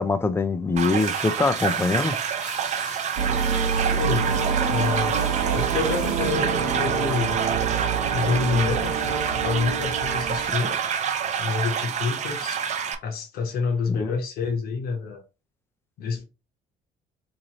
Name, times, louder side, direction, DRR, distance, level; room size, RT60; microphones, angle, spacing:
voice 1, 0.0-2.2 13.9-14.2, left 3 dB, 15° left, 0.4 m, -23 dB
sound 1, 0.8-13.0, right 7 dB, 45° right, 0.6 m, -28 dB
sound 2, 0.9-6.4, equal, ahead, 1.3 m, -43 dB
sound 3, 3.2-10.5, right 6 dB, 85° right, 0.9 m, -26 dB
voice 2, 3.9-4.4 4.7-7.4 8.1-10.7 11.4-12.6 13.0-15.2 16.0-16.2, left 5 dB, 65° left, 1.0 m, -28 dB
3.1 x 2.6 x 4.0 m
cardioid pair, 110°, 17 cm